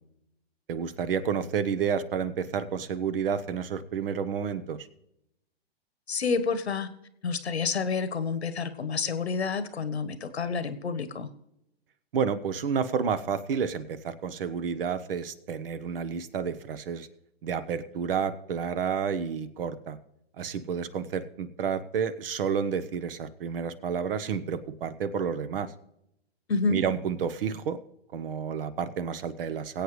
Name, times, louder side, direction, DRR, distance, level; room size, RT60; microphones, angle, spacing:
voice 1, 0.7-4.9 12.1-17.1 17.4-20.0 20.4-25.7 26.7-27.8 28.1-29.8, right 7 dB, 60° right, 14 dB, 1.2 m, -30 dB
voice 2, 6.1-6.9 7.2-11.3 26.5-26.8, left 5 dB, 85° left, 12 dB, 1.3 m, -29 dB
22.0 x 8.4 x 3.2 m, 0.81 s
hypercardioid pair, 125°, 31 cm